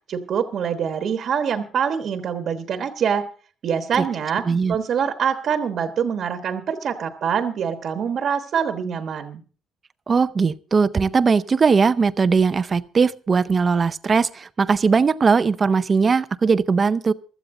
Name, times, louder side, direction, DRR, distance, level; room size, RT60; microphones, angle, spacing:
voice 1, 0.1-3.3 3.6-9.4, right 7 dB, 40° right, 1.3 m, -25 dB
voice 2, 4.5-4.8 10.1-17.1, right 5 dB, 25° right, 0.6 m, -19 dB
15.5 x 14.0 x 3.7 m
cardioid pair, 180°, 0 cm